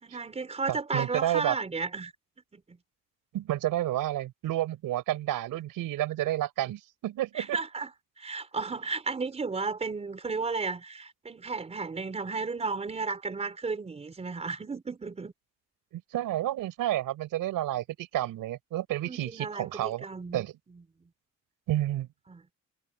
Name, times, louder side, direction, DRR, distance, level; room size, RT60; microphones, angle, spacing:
voice 1, 0.0-2.1 2.5-2.8 7.3-7.9 8.2-15.3 19.1-20.4 20.7-20.8 22.3-22.4, right 4 dB, 20° right, 4.2 m, -34 dB
voice 2, 0.7-1.5 3.3-7.6 15.9-20.1 20.3-20.5 21.7-22.1, right 13 dB, 85° right, 4.7 m, -30 dB
cardioid pair, 180°, 32 cm